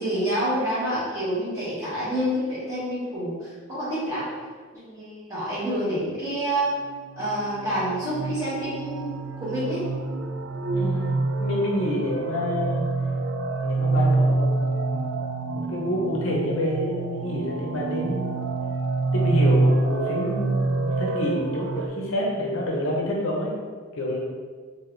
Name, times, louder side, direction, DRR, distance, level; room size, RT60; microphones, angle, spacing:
voice 1, 0.0-4.3 4.8-6.7 7.2-9.9 11.0-11.1, right 1 dB, 15° right, -10 dB, 1.3 m, -28 dB
sound 1, 7.1-21.9, right 3 dB, 55° right, 0.3 m, -26 dB
voice 2, 10.7-12.9 13.6-15.0 15.5-18.5 19.1-23.5 23.9-24.2, left 1 dB, 60° left, -3 dB, 0.7 m, -28 dB
3.8 x 2.6 x 3.2 m, 1.5 s
head